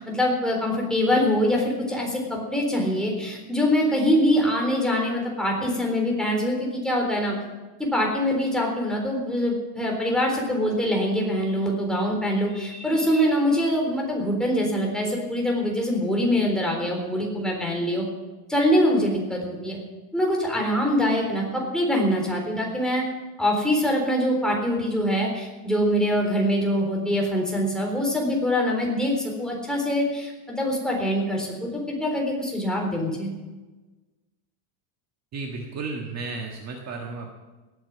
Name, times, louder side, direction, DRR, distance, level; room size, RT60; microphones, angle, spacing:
voice 1, 0.0-7.3 7.8-18.1 18.5-19.8 20.1-23.0 23.4-33.3, equal, ahead, -1 dB, 3.8 m, -24 dB
voice 2, 35.3-37.3, right 3 dB, 35° right, 1 dB, 1.6 m, -33 dB
18.0 x 9.0 x 7.4 m, 1.2 s
cardioid pair, 155°, 48 cm